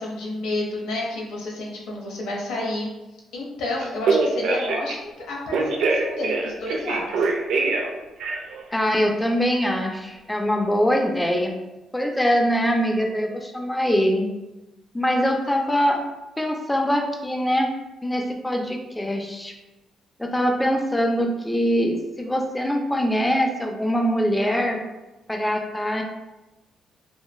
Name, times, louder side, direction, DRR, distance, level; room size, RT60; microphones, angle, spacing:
voice 1, 0.0-2.9 3.3-7.3, left 2 dB, 90° left, -2 dB, 0.6 m, -30 dB
Telephone, 3.8-4.9 5.5-7.9 8.2-8.6, right 3 dB, 85° right, 0.3 m, -23 dB
voice 2, 8.7-11.5 11.9-14.3 14.9-16.0 16.4-17.7 18.0-19.5 20.2-24.8 25.3-26.0, equal, 10° left, 2 dB, 0.3 m, -23 dB
3.0 x 2.2 x 2.2 m, 1.0 s
cardioid pair, 90°, 0 cm